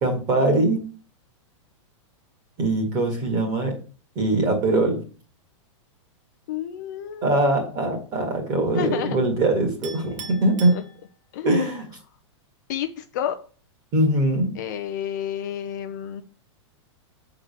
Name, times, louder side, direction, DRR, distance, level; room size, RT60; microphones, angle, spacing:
voice 1, 0.0-0.8 2.6-3.8 4.2-5.0 7.2-10.7 11.4-11.9 13.9-14.5, right 2 dB, 25° right, 3 dB, 1.9 m, -22 dB
voice 2, 6.5-7.5 8.7-9.2 10.7-10.8 11.3-11.5 12.7-13.4 14.5-16.2, left 10 dB, 35° left, 8 dB, 0.5 m, -30 dB
Chink clink, 9.8-11.5, right 6 dB, 85° right, 1.9 m, -41 dB
7.9 x 3.9 x 6.4 m, 0.39 s
supercardioid pair, 175°, 16 cm